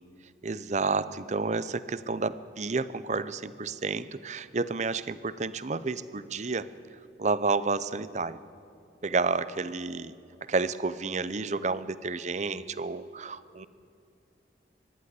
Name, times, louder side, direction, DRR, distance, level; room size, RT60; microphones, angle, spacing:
voice 1, 0.4-6.7 7.2-8.4 9.0-10.2 10.4-13.7, right 4 dB, 40° right, 16 dB, 0.7 m, -30 dB
24.0 x 11.5 x 9.7 m, 2.6 s
head